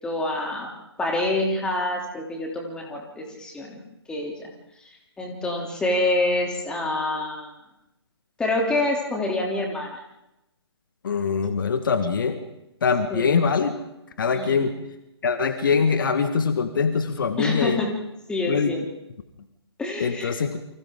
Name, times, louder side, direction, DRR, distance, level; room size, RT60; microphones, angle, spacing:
voice 1, 0.0-0.7 1.0-3.8 4.1-4.5 5.2-7.5 8.4-10.0 13.1-13.4 14.3-14.6 17.4-17.9 18.3-18.8 19.8-20.3, left 2 dB, 5° left, 0 dB, 3.2 m, -26 dB
voice 2, 11.0-12.4 12.8-13.7 14.2-14.7 15.2-17.8 18.5-18.7 20.0-20.6, left 5 dB, 50° left, 8 dB, 1.8 m, -23 dB
29.0 x 25.0 x 3.9 m, 0.90 s
figure-of-eight pair, 140°, 14 cm